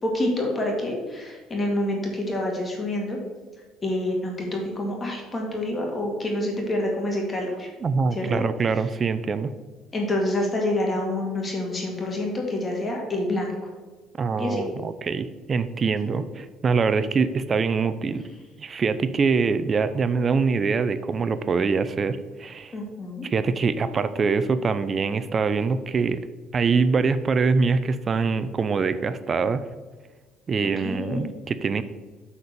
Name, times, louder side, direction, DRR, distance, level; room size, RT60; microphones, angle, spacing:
voice 1, 0.0-3.2 3.8-7.7 8.1-8.4 9.9-13.5 14.4-14.6 16.1-16.2 22.7-23.3 30.8-31.3, left 1 dB, 25° left, 0 dB, 2.0 m, -27 dB
voice 2, 7.8-9.5 14.2-18.3 18.6-22.7 23.2-26.2 26.5-29.6 30.5-31.8, right 5 dB, 30° right, 12 dB, 0.4 m, -24 dB
8.4 x 4.3 x 6.7 m, 1.3 s
cardioid pair, 130°, 0 cm